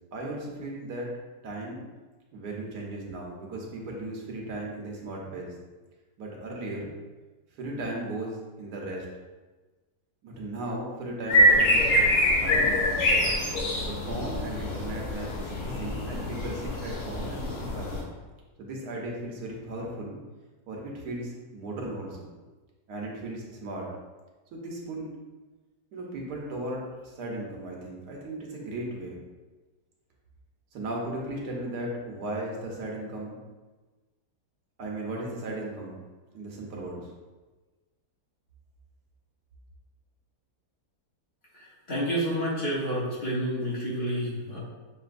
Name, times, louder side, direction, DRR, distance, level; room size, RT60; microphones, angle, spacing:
voice 1, 0.1-1.1 1.4-1.8 2.3-5.5 6.2-6.9 7.5-9.1 10.2-12.0 12.4-13.0 13.8-18.1 18.6-20.2 20.7-22.3 22.9-23.9 24.5-25.1 25.9-29.2 30.7-33.4 34.8-36.0 36.3-37.1, right 1 dB, 80° right, -1 dB, 1.4 m, -36 dB
sound 1, 11.3-18.0, equal, 75° left, 1.4 m, -25 dB
voice 2, 41.5-44.6, equal, 45° left, -6 dB, 1.1 m, -29 dB
6.6 x 2.6 x 2.5 m, 1.2 s
omnidirectional pair, 1.7 m